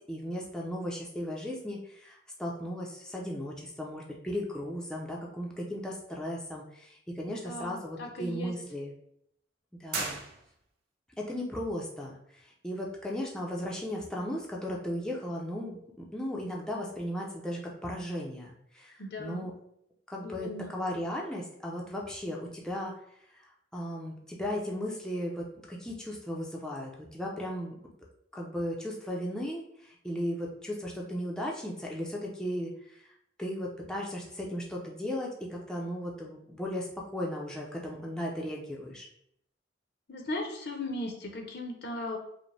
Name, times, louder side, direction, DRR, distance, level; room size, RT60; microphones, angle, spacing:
voice 1, 0.1-8.9 9.8-10.2 11.2-12.1 12.6-19.5 20.1-22.9 23.7-27.7 28.3-32.7 33.4-39.1, equal, 5° left, -3 dB, 0.5 m, -36 dB
voice 2, 7.3-8.5 19.0-19.5 20.2-20.7 40.1-42.2, left 1 dB, 60° left, 2 dB, 0.7 m, -37 dB
sound 1, 9.9-10.9, right 3 dB, 55° right, 1.0 m, -36 dB
5.0 x 2.1 x 3.3 m, 0.72 s
head